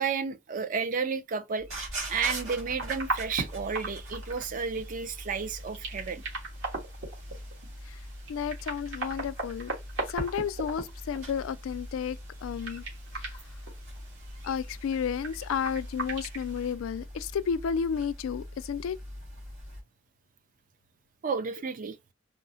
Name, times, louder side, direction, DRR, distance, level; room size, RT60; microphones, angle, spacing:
voice 1, 0.0-1.7 2.1-6.2 21.2-22.0, right 5 dB, 40° right, 0.4 m, -32 dB
sound 1, 1.6-19.8, equal, 85° right, 1.7 m, -42 dB
sound 2, 2.8-16.7, right 2 dB, 65° right, 1.4 m, -39 dB
voice 2, 8.3-9.7 10.1-12.8 13.1-13.2 14.4-19.0, left 7 dB, 80° left, 0.3 m, -32 dB
3.6 x 2.0 x 2.6 m
head